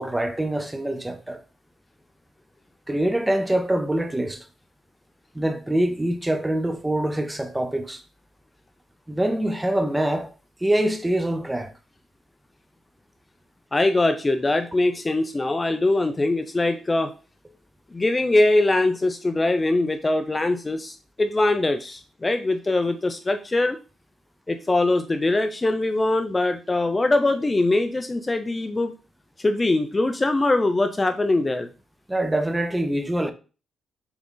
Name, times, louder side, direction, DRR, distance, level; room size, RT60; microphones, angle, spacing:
voice 1, 0.0-1.4 2.9-4.4 5.3-8.0 9.1-10.3 10.6-11.7 32.1-33.3, right 1 dB, 10° right, 0.7 m, -24 dB
voice 2, 13.7-17.1 17.9-23.8 24.5-28.9 29.4-31.7, left 2 dB, 20° left, 0.6 m, -22 dB
7.0 x 3.8 x 3.9 m
cardioid pair, 115°, 0 cm